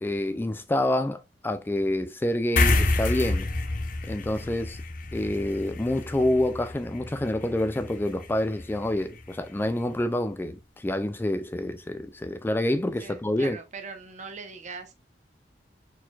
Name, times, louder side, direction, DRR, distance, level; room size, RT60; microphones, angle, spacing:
voice 1, 0.0-3.5 4.0-4.8 5.1-13.6, left 1 dB, 10° left, 0.3 m, -27 dB
sound 1, 2.6-9.3, left 2 dB, 50° left, 0.7 m, -29 dB
voice 2, 13.0-14.9, right 4 dB, 45° right, 0.8 m, -41 dB
4.4 x 4.1 x 2.3 m
head